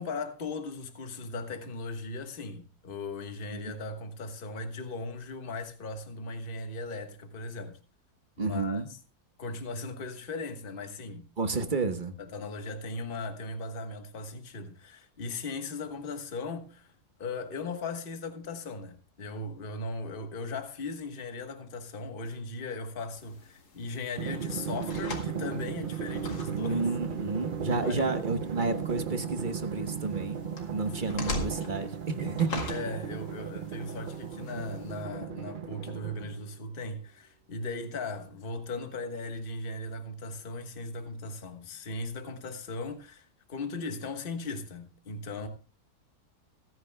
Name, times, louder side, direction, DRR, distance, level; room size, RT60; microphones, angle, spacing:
voice 1, 0.0-7.8 8.4-9.0 9.4-11.3 12.2-16.9 17.2-26.9 27.7-28.1 30.8-31.3 32.7-45.5, left 3 dB, 35° left, 1.4 m, -38 dB
voice 2, 8.4-8.9 11.4-12.2 26.6-30.4 30.7-32.6, right 3 dB, 35° right, 1.1 m, -31 dB
sound 1, 23.1-35.0, left 3 dB, 75° left, 2.5 m, -43 dB
Drum, 24.2-36.5, right 7 dB, 65° right, 0.4 m, -36 dB
24.5 x 9.6 x 2.2 m
omnidirectional pair, 1.7 m